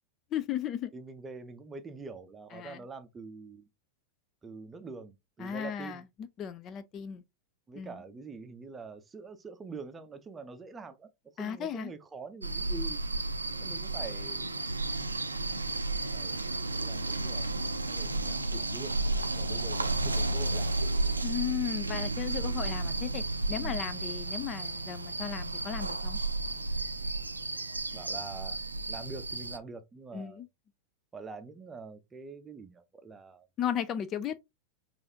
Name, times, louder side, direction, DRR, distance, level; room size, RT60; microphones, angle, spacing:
voice 1, 0.3-0.9 2.5-2.8 5.4-7.2 7.8-8.0 11.4-11.9 21.2-23.2 23.5-26.2 30.1-30.5 33.6-34.4, left 9 dB, 30° left, 0.4 m, -35 dB
voice 2, 0.9-3.7 4.4-6.0 7.7-11.1 11.4-13.0 13.6-14.5 16.1-19.0 19.3-20.8 23.6-23.8 27.9-28.6 28.9-30.4 31.1-33.5, right 4 dB, 15° right, 0.6 m, -45 dB
sound 1, 12.4-29.6, right 2 dB, 80° right, 0.4 m, -32 dB
4.7 x 2.5 x 2.7 m
figure-of-eight pair, 90°, 0 cm